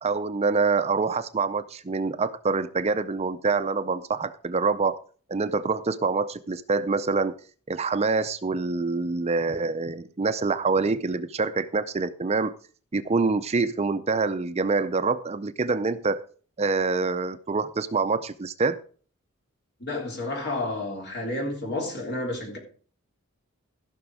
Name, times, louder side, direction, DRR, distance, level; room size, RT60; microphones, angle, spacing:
voice 1, 0.0-5.0 5.3-7.3 7.7-12.5 12.9-16.2 16.6-18.8, right 4 dB, 30° right, 0.5 m, -26 dB
voice 2, 19.8-22.6, left 2 dB, 50° left, 3.5 m, -30 dB
15.5 x 6.0 x 4.8 m
head